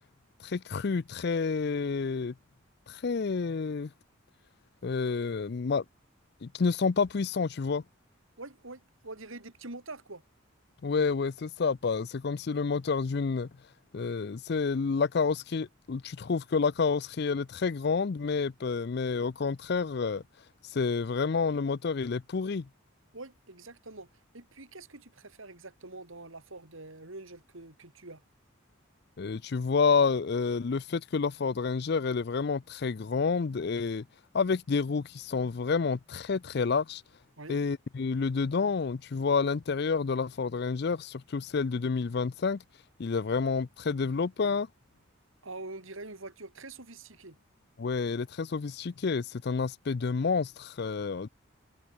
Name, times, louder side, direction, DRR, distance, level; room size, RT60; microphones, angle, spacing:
voice 1, 0.4-2.3 2.9-3.9 4.8-5.8 6.4-7.8 10.8-13.5 13.9-20.2 20.7-22.7 29.2-34.1 34.3-37.0 37.5-42.6 43.0-44.7 47.8-51.3, left 5 dB, 50° left, 0.5 m, -29 dB
voice 2, 8.4-10.2 23.1-24.1 24.3-28.2 37.4-37.6 45.4-47.4, right 2 dB, 75° right, 3.1 m, -45 dB
head